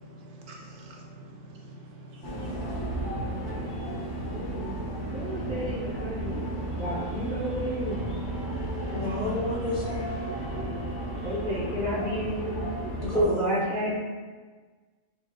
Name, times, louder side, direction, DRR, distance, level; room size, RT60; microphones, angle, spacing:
voice 1, 0.0-3.7, right 1 dB, 70° right, -1 dB, 1.0 m, -46 dB
sound 1, 2.2-13.2, right 1 dB, 85° left, 2.0 m, -33 dB
voice 2, 5.1-8.0 11.2-12.6 13.1-13.9, equal, 50° right, -6 dB, 0.7 m, -32 dB
voice 3, 8.9-10.1 13.0-13.6, equal, 55° left, -5 dB, 0.7 m, -28 dB
5.3 x 2.4 x 2.6 m, 1.4 s
omnidirectional pair, 1.4 m